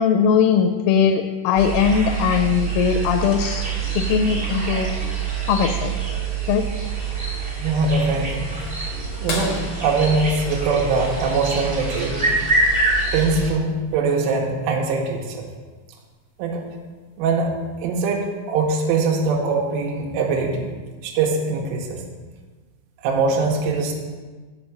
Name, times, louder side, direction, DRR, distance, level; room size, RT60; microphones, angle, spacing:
voice 1, 0.0-3.7 4.0-4.9 5.5-5.9 6.5-6.7, left 7 dB, 90° left, 6 dB, 3.2 m, -19 dB
sound 1, 1.5-13.5, right 4 dB, 30° right, 1.2 m, -25 dB
voice 2, 7.6-8.5 9.2-9.5 9.8-12.4 13.1-15.4 16.4-16.6 17.2-17.5 17.8-20.7 21.0-22.0 23.0-23.9, right 4 dB, 80° right, 0 dB, 3.2 m, -22 dB
sound 2, 9.3-11.7 13.7-13.8 16.0-16.1 17.8-18.1 18.9-19.0, left 2 dB, 65° left, 2.0 m, -33 dB
6.6 x 5.4 x 7.1 m, 1.4 s
omnidirectional pair, 5.9 m